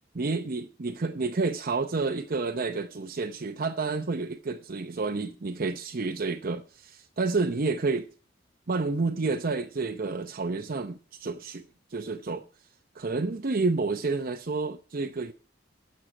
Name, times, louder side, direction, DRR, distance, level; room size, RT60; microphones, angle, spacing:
voice 1, 0.1-8.1 8.7-11.6 11.9-12.4 12.9-15.3, right 3 dB, 50° right, 0.7 m, -29 dB
12.0 x 6.5 x 8.8 m
head